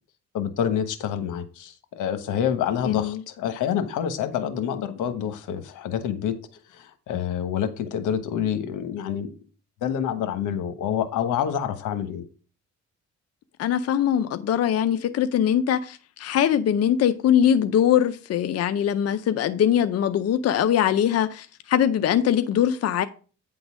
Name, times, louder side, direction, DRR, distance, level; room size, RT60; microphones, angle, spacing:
voice 1, 0.3-6.3 6.7-9.3 9.8-12.2, left 9 dB, 85° left, 1.1 m, -27 dB
voice 2, 2.8-3.2 13.6-23.0, left 9 dB, 55° left, 0.6 m, -22 dB
8.8 x 3.9 x 6.1 m
cardioid pair, 90°, 30 cm